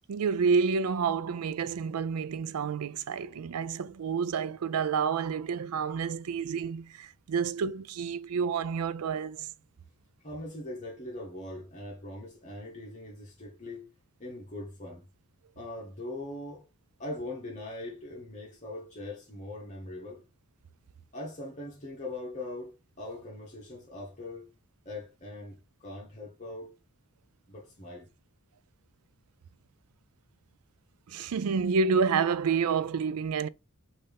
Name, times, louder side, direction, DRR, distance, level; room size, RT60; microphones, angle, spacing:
voice 1, 0.1-9.5 31.1-33.5, right 5 dB, 90° right, 0.4 m, -29 dB
voice 2, 10.2-13.9 14.2-15.1 15.5-16.7 17.0-20.2 21.1-24.5 24.8-26.7 27.5-28.1, left 1 dB, 35° left, 1.2 m, -41 dB
5.5 x 2.7 x 3.4 m
head